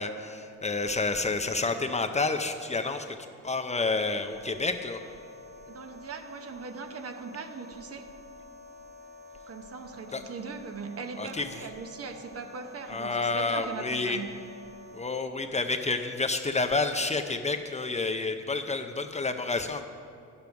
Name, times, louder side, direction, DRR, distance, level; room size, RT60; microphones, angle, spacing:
voice 1, 0.0-3.2 3.4-5.0 10.1-10.2 11.2-11.6 12.9-14.2 14.9-19.8, left 3 dB, 25° left, 7 dB, 0.5 m, -29 dB
sound 1, 3.8-15.0, left 3 dB, 35° right, 2.0 m, -49 dB
voice 2, 5.7-8.1 9.5-14.3, right 5 dB, 50° right, 6 dB, 1.0 m, -40 dB
9.3 x 7.0 x 5.8 m, 2.5 s
cardioid pair, 90°, 30 cm